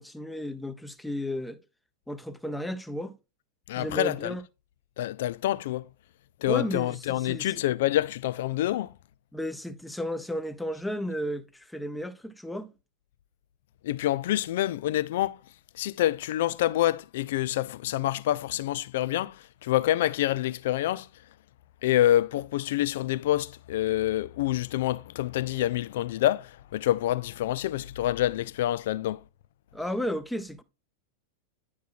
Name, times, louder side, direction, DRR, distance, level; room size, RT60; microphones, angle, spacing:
voice 1, 0.0-1.6 2.1-3.1 3.8-4.4 6.5-7.6 9.3-12.7 29.7-30.6, equal, 5° left, 0.8 m, -33 dB
voice 2, 3.7-4.3 5.0-5.9 6.4-8.9 13.8-15.4 15.7-21.1 21.8-29.2, left 13 dB, 55° left, 0.4 m, -27 dB
10.5 x 6.1 x 2.3 m
figure-of-eight pair, 90°, 0 cm